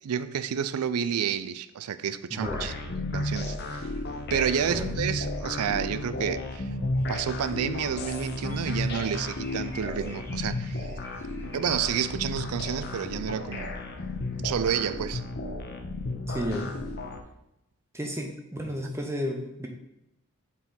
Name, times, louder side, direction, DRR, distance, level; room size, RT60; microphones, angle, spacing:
voice 1, 0.0-3.9 4.3-6.7 7.1-10.9 11.5-13.7 14.4-15.2, right 8 dB, 80° right, 13 dB, 0.4 m, -30 dB
voice 2, 2.3-2.7 4.6-4.9 16.3-16.8 17.9-19.7, equal, 10° right, 2 dB, 0.7 m, -32 dB
sound 1, 2.4-17.2, left 2 dB, 45° left, 0.6 m, -33 dB
sound 2, 6.9-12.1, equal, 10° left, 1.0 m, -50 dB
5.9 x 4.3 x 3.8 m, 0.87 s
head